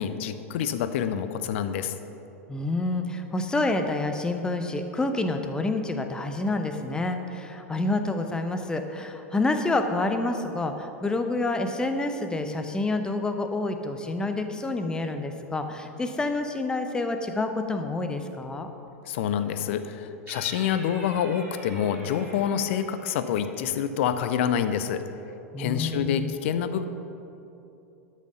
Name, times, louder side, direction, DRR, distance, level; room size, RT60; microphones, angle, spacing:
voice 1, 0.0-1.9 19.1-25.0 25.6-26.8, left 8 dB, 55° left, 11 dB, 0.6 m, -27 dB
voice 2, 2.5-18.7 25.5-26.3, left 2 dB, 10° left, 6 dB, 0.8 m, -28 dB
sound 1, 20.3-23.8, right 2 dB, 20° right, 2.6 m, -46 dB
12.0 x 6.4 x 5.5 m, 2.9 s
figure-of-eight pair, 90°, 8 cm